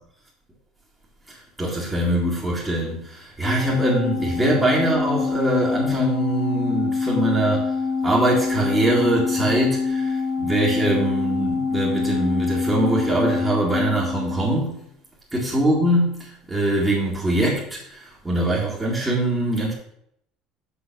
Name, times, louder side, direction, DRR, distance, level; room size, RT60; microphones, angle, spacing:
voice 1, 1.3-7.7 8.0-14.8 15.3-19.7, right 1 dB, 10° right, -7 dB, 2.0 m, -23 dB
Organ, 3.4-14.7, left 4 dB, 25° left, 1.7 m, -25 dB
6.9 x 6.9 x 6.0 m, 0.72 s
cardioid pair, 165°, 0 cm